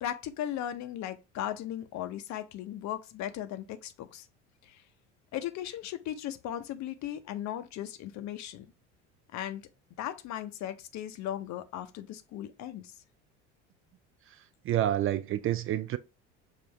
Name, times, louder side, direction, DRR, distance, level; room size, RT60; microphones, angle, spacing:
voice 1, 0.0-4.3 4.6-4.8 5.3-8.7 9.3-9.7 10.0-12.9, left 11 dB, 50° left, 0.7 m, -37 dB
voice 2, 14.7-16.0, right 12 dB, 40° right, 0.4 m, -28 dB
5.4 x 2.5 x 3.3 m
hypercardioid pair, 70°, 36 cm